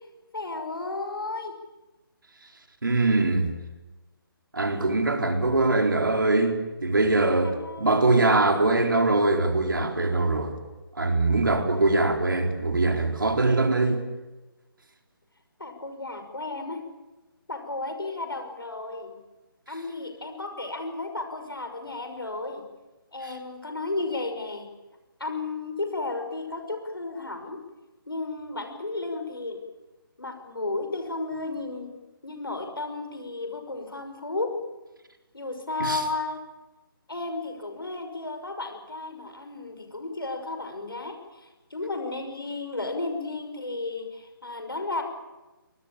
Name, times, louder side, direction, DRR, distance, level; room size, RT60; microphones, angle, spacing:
voice 1, 0.3-1.6 7.4-8.1 15.6-16.8 17.5-19.2 19.7-22.6 23.1-24.7 25.2-27.6 28.1-29.6 30.2-31.9 32.2-34.5 35.3-36.4 37.1-45.0, left 2 dB, 70° left, 6 dB, 5.9 m, -33 dB
voice 2, 2.8-3.5 4.5-10.5 11.0-14.0 35.8-36.0, right 2 dB, 60° right, 4 dB, 4.2 m, -22 dB
25.0 x 20.0 x 8.8 m, 1.1 s
figure-of-eight pair, 145°, 12 cm